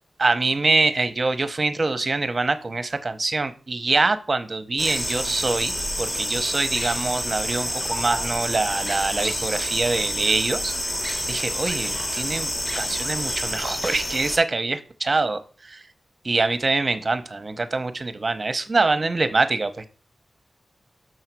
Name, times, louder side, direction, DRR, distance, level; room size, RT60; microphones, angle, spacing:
voice 1, 0.2-10.9 11.3-15.8 16.2-19.9, right 3 dB, 45° right, 11 dB, 0.8 m, -24 dB
sound 1, 4.8-14.4, equal, 25° left, 1.2 m, -28 dB
6.4 x 4.0 x 6.0 m, 0.39 s
wide cardioid pair, 75°, 0 cm